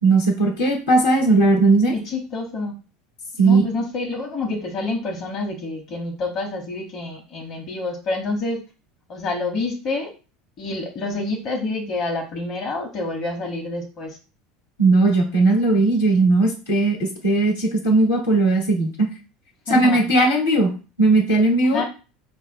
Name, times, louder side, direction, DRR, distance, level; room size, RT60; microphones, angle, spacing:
voice 1, 0.0-1.9 3.4-3.6 14.8-19.1 19.7-21.8, right 2 dB, 75° left, 0 dB, 1.2 m, -18 dB
voice 2, 1.9-2.7 3.4-8.6 9.1-10.1 10.6-14.2 19.7-20.0 21.6-21.8, left 3 dB, 45° left, 2 dB, 1.0 m, -28 dB
5.2 x 2.1 x 4.4 m, 0.34 s
figure-of-eight pair, 75°, 0 cm